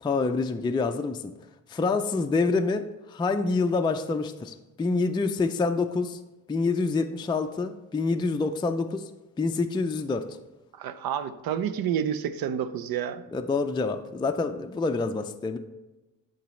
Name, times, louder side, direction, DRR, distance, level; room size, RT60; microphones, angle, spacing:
voice 1, 0.0-1.3 1.7-6.2 6.5-9.1 9.4-10.4 13.3-15.6, left 3 dB, 15° left, 6 dB, 0.4 m, -27 dB
voice 2, 10.7-13.2, right 8 dB, 80° right, 13 dB, 0.6 m, -29 dB
10.5 x 4.0 x 3.2 m, 1.1 s
cardioid pair, 85°, 35 cm